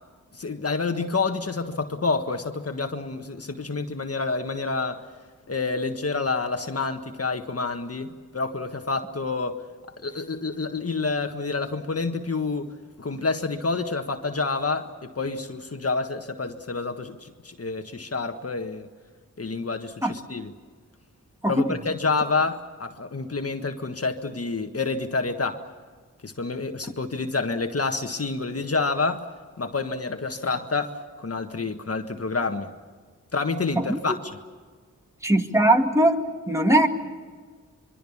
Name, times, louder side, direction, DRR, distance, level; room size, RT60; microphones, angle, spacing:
voice 1, 0.3-5.0 5.5-9.6 10.0-12.7 13.0-18.9 19.4-20.5 21.5-25.6 26.2-29.2 29.6-32.7 33.3-34.4, left 3 dB, 50° left, 6 dB, 1.6 m, -28 dB
voice 2, 21.4-21.8 33.8-34.0 35.2-36.2 36.5-36.9, right 1 dB, 10° right, 3 dB, 2.2 m, -20 dB
25.0 x 23.5 x 7.2 m, 1.5 s
wide cardioid pair, 65°, 32 cm